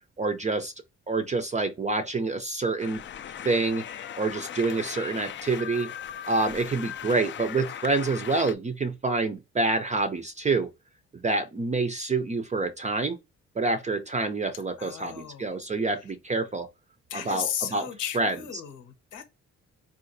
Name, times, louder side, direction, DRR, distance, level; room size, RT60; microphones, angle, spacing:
voice 1, 0.2-0.7 1.1-3.0 3.4-5.9 6.3-10.7 11.1-13.2 13.6-16.7 17.1-17.9 18.1-18.4, right 3 dB, 25° right, 0.4 m, -27 dB
sound 1, 2.8-8.5, left 9 dB, 40° left, 0.4 m, -38 dB
voice 2, 14.8-15.5 17.1-19.2, left 9 dB, 85° left, 1.0 m, -35 dB
3.7 x 2.5 x 2.6 m
cardioid pair, 90°, 30 cm